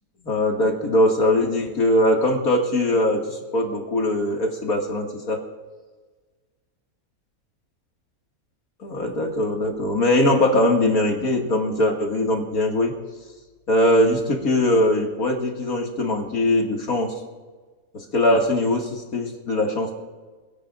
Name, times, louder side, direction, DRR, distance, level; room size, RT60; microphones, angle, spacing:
voice 1, 0.2-5.4 8.8-12.9 13.7-17.1 17.9-20.0, left 1 dB, 85° left, 0 dB, 2.6 m, -21 dB
26.5 x 17.0 x 2.6 m, 1.4 s
omnidirectional pair, 1.5 m